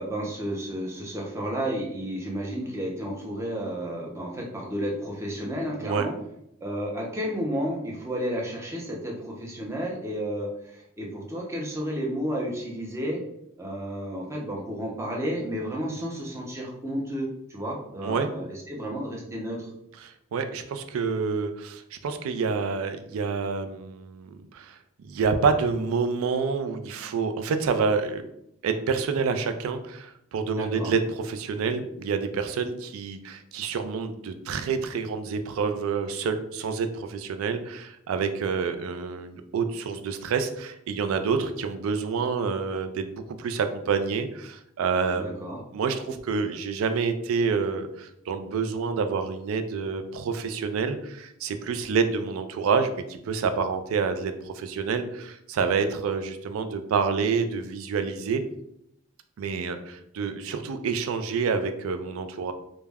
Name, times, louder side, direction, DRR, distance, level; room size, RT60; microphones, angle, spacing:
voice 1, 0.0-6.1 6.6-13.2 13.6-19.7 30.6-30.9 45.1-45.6, equal, 15° right, -2 dB, 0.5 m, -32 dB
voice 2, 20.0-28.3 28.6-58.4 59.4-62.5, right 5 dB, 90° right, 9 dB, 0.3 m, -28 dB
2.2 x 2.0 x 3.3 m, 0.78 s
head